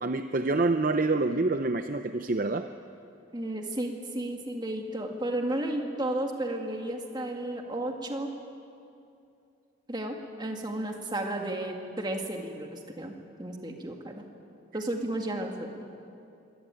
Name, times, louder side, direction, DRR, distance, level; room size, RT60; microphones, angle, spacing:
voice 1, 0.0-2.7, right 3 dB, 40° right, 8 dB, 0.6 m, -27 dB
voice 2, 3.3-8.3 9.9-13.1 13.4-14.3 14.7-15.8, right 1 dB, 20° right, 2 dB, 2.1 m, -33 dB
24.5 x 18.5 x 9.1 m, 2.6 s
head